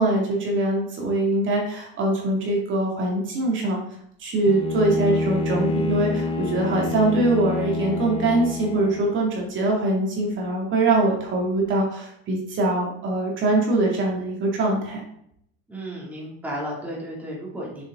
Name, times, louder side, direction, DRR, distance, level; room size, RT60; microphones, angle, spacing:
voice 1, 0.0-3.8 4.2-15.0, right 2 dB, 40° right, -1 dB, 2.2 m, -23 dB
Bowed string instrument, 4.4-9.3, left 3 dB, 20° left, 0.8 m, -28 dB
voice 2, 15.7-17.8, equal, 5° right, -5 dB, 2.4 m, -33 dB
7.1 x 6.5 x 3.7 m, 0.70 s
cardioid pair, 140°, 29 cm